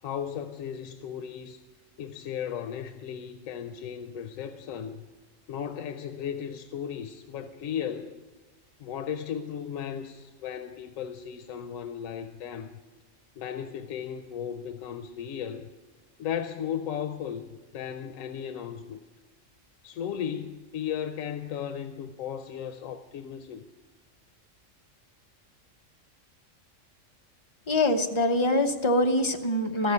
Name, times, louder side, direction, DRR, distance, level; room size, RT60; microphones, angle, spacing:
voice 1, 0.0-1.6 2.0-5.0 5.5-8.2 8.8-12.7 13.4-15.7 16.2-19.0 19.8-23.6, left 8 dB, 90° left, 1.0 m, -35 dB
voice 2, 27.7-29.9, left 1 dB, 30° left, 0.7 m, -24 dB
14.0 x 6.8 x 9.5 m
omnidirectional pair, 1.3 m